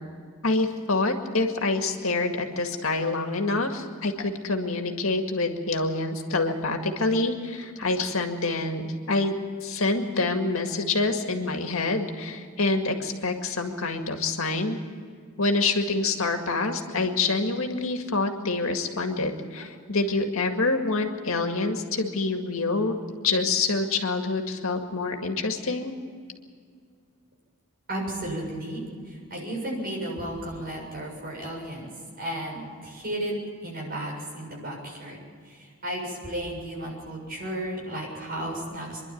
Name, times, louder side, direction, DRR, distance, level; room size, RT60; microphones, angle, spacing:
voice 1, 0.4-14.8 15.4-22.9 23.2-25.9, left 3 dB, 70° left, 4 dB, 2.0 m, -26 dB
voice 2, 27.9-31.9 32.2-33.3 33.6-39.0, right 1 dB, 45° right, -1 dB, 7.2 m, -34 dB
25.5 x 11.5 x 9.4 m, 2.1 s
head